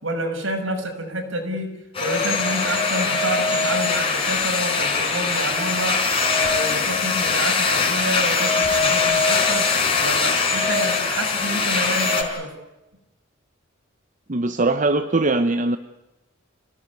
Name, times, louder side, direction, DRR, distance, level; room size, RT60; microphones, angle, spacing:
voice 1, 0.0-1.7 2.0-6.0 6.4-9.7 10.0-12.5, right 1 dB, 70° right, 4 dB, 6.2 m, -28 dB
sound 1, 1.9-12.2, left 4 dB, 30° left, 4.8 m, -21 dB
voice 2, 14.3-15.8, right 2 dB, 35° right, 9 dB, 0.8 m, -21 dB
27.5 x 18.0 x 9.6 m, 1.0 s
head